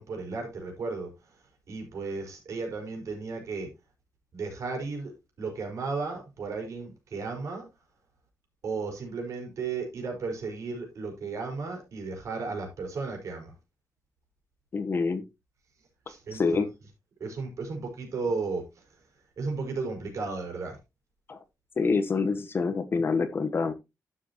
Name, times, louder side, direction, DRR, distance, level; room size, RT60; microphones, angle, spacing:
voice 1, 0.0-3.7 4.3-7.7 8.6-13.5 16.1-16.7 17.2-19.0 19.4-20.8, right 4 dB, 60° right, 4.7 m, -34 dB
voice 2, 14.7-15.2 16.3-16.7 21.3-21.4 21.8-23.7, left 4 dB, 40° left, 1.0 m, -26 dB
11.5 x 7.7 x 2.9 m
wide cardioid pair, 150°, 6 cm